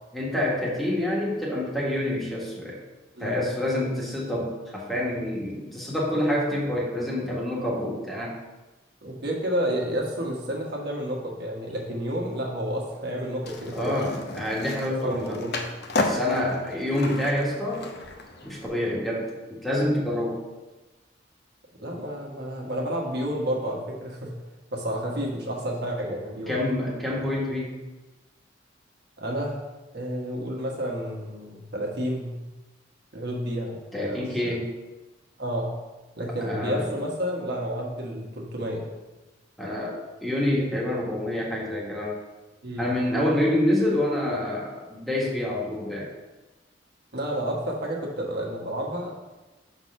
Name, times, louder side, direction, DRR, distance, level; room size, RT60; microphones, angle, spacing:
voice 1, 0.1-2.8 3.2-8.4 13.7-15.4 15.9-17.9 18.4-20.4 26.4-27.7 33.9-34.7 36.4-36.9 39.6-42.2 42.8-46.1, left 1 dB, ahead, -5 dB, 1.5 m, -27 dB
voice 2, 9.0-13.9 15.0-15.6 21.8-24.3 24.7-26.6 29.2-29.6 29.9-32.3 33.1-34.6 35.4-35.7 36.2-38.9 42.6-42.9 47.1-49.1, equal, 60° right, -1 dB, 1.4 m, -30 dB
Skateboard, 13.4-18.7, left 2 dB, 60° left, 0.8 m, -33 dB
6.3 x 4.0 x 5.7 m, 1.1 s
head